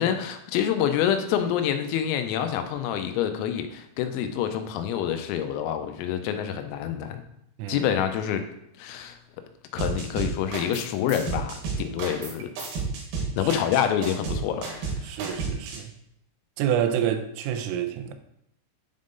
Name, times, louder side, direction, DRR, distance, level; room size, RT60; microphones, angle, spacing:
voice 1, 0.0-7.2 7.7-8.4 8.8-9.2 9.7-12.5 13.4-15.2, left 9 dB, 90° left, 3.4 m, -27 dB
sound 1, 9.8-10.8 11.1-15.8, right 4 dB, 65° right, 2.5 m, -31 dB
voice 2, 15.0-15.9 16.6-18.1, right 9 dB, 85° right, 3.3 m, -28 dB
10.5 x 3.7 x 3.9 m
omnidirectional pair, 5.9 m